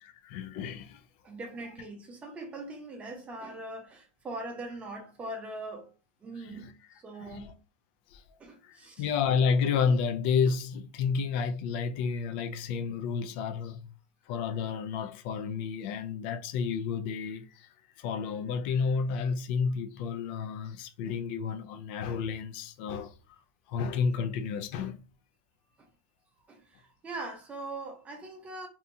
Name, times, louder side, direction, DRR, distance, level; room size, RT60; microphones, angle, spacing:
voice 1, 0.0-1.0 6.4-6.7 7.2-7.5 8.1-8.4 8.6-13.9 14.3-17.7 18.0-23.1 23.7-25.0, left 6 dB, 55° left, 0.3 m, -31 dB
voice 2, 1.2-5.9 6.2-6.8 7.0-7.6 8.4-9.0 25.8-25.9 26.5-28.7, right 2 dB, 20° right, 0.7 m, -41 dB
2.7 x 2.2 x 2.6 m
supercardioid pair, 135°, 7 cm